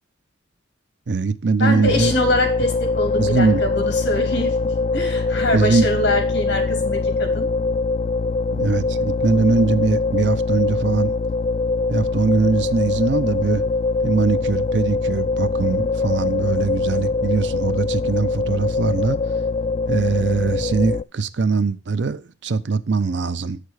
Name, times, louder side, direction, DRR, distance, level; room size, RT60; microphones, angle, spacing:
voice 1, 1.1-2.1 3.2-3.6 5.5-5.9 8.5-11.2 11.9-13.6 14.0-19.2 19.9-23.6, right 4 dB, 65° right, 0.5 m, -21 dB
voice 2, 1.6-7.5, left 1 dB, 60° left, 2.5 m, -24 dB
sound 1, 1.8-21.0, left 3 dB, 35° left, 0.3 m, -23 dB
8.2 x 6.6 x 4.7 m
head